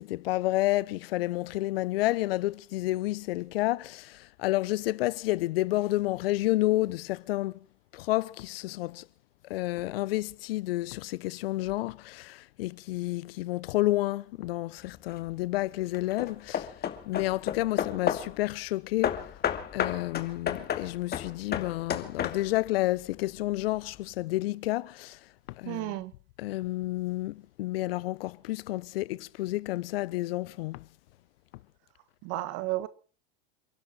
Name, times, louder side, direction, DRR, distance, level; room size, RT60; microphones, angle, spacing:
voice 1, 0.0-7.6 7.9-9.0 9.5-16.7 17.1-19.2 19.7-25.2 25.6-26.0 26.4-30.8, left 18 dB, 65° left, 0.9 m, -30 dB
Hammer / Wood, 14.8-15.3 15.9-18.4 19.0-22.7, left 9 dB, 30° left, 2.4 m, -32 dB
voice 2, 25.6-26.1 32.2-32.9, right 17 dB, 50° right, 1.7 m, -32 dB
28.5 x 11.5 x 4.4 m
hypercardioid pair, 105°, 32 cm